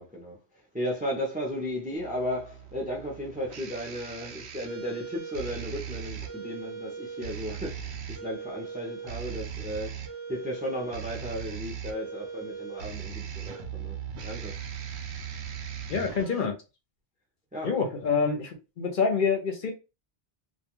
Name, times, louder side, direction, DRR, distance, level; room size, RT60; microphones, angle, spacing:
voice 1, 0.0-14.9 17.5-17.8, equal, 10° right, 0.4 m, -35 dB
sound 1, 2.0-16.5, right 7 dB, 80° right, 0.8 m, -39 dB
voice 2, 15.9-16.5 17.6-19.7, left 5 dB, 55° left, 0.7 m, -27 dB
2.4 x 2.2 x 2.9 m
omnidirectional pair, 1.1 m